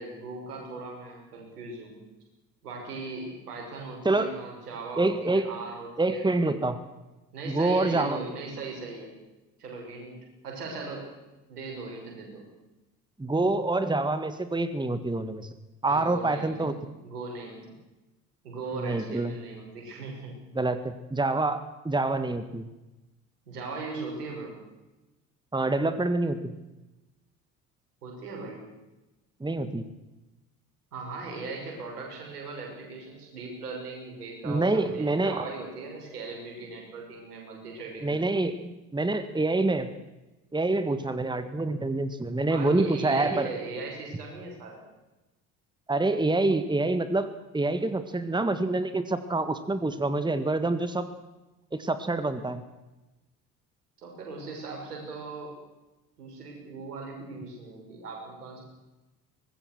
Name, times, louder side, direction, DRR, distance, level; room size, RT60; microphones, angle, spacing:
voice 1, 0.0-2.0 2.6-6.3 7.3-9.1 9.6-10.2 10.4-11.2 11.5-12.4 15.8-16.7 17.0-17.7 18.4-20.4 23.5-24.6 28.0-28.7 30.9-38.3 42.5-44.8 54.0-55.6 56.2-58.6, right 3 dB, 80° right, 0 dB, 6.5 m, -38 dB
voice 2, 4.1-4.4 5.0-5.5 6.0-6.8 7.5-8.2 13.2-15.5 15.8-16.7 18.7-19.3 20.5-22.7 25.5-26.5 29.4-29.8 34.4-35.4 38.0-39.9 40.5-43.5 45.9-51.1 51.7-52.6, right 2 dB, 10° right, 11 dB, 1.8 m, -26 dB
24.5 x 20.5 x 6.3 m, 1.0 s
figure-of-eight pair, 50°, 46 cm